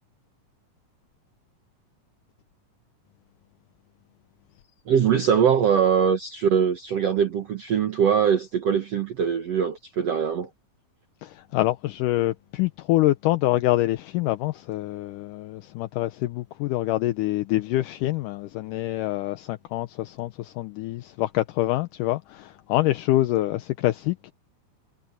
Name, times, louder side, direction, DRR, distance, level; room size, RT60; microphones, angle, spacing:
voice 1, 4.9-10.5, right 7 dB, 60° right, 1.8 m, -22 dB
voice 2, 11.2-24.3, left 16 dB, 80° left, 1.9 m, -26 dB
omnidirectional pair, 4.4 m